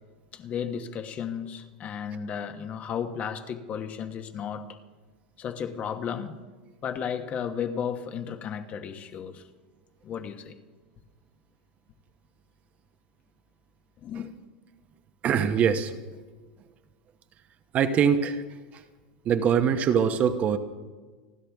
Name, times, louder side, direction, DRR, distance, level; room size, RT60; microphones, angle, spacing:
voice 1, 0.3-4.8 5.4-6.4 6.8-9.4 10.0-10.5 14.0-14.3, left 7 dB, 35° left, 1.2 m, -34 dB
voice 2, 15.2-15.9 17.7-18.4 19.2-20.6, right 7 dB, 35° right, 1.0 m, -23 dB
29.5 x 11.5 x 3.6 m
supercardioid pair, 125°, 4 cm